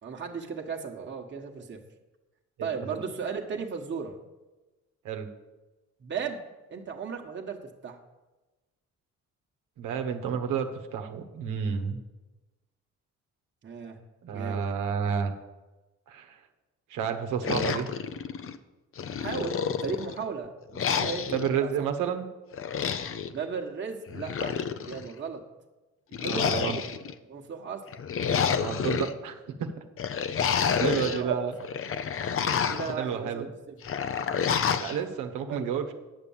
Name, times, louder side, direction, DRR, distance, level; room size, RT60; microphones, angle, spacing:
voice 1, 0.0-1.8 2.6-4.2 6.0-6.4 6.7-8.0 13.6-14.0 14.3-14.7 19.2-21.9 23.3-25.4 26.1-26.8 27.3-27.8 30.8-31.4 32.0-32.1 32.7-33.8 35.5-35.7, right 6 dB, 40° right, 0 dB, 1.4 m, -36 dB
voice 2, 2.6-3.0 5.0-5.3 9.8-12.0 14.2-15.3 16.1-16.4 16.9-17.9 21.3-22.2 26.2-26.8 28.6-29.8 30.6-31.5 32.6-33.5 34.8-35.9, right 7 dB, 85° right, 5 dB, 1.2 m, -31 dB
sound 1, 17.4-18.6 19.0-20.2 20.8-21.5 22.5-23.3 24.1-25.1 26.1-27.1 27.9-29.1 30.0-31.2 31.6-33.0 33.8-35.0, left 7 dB, 45° left, 0.7 m, -29 dB
9.8 x 6.9 x 7.3 m, 1.1 s
cardioid pair, 90°, 30 cm